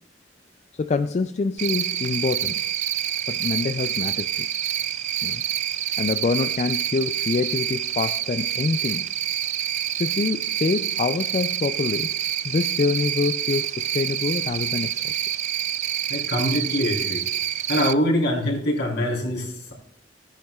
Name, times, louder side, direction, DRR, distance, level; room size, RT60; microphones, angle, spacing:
voice 1, 0.7-2.6 3.3-4.5 5.2-5.4 6.0-9.2 9.9-12.1 12.4-15.2, left 4 dB, 40° left, 9 dB, 0.3 m, -26 dB
Cricket, 1.6-17.9, right 11 dB, 40° right, 0.3 m, -27 dB
voice 2, 16.1-17.2 17.7-19.7, left 1 dB, 65° left, -2 dB, 3.9 m, -24 dB
15.5 x 10.0 x 2.4 m, 0.66 s
head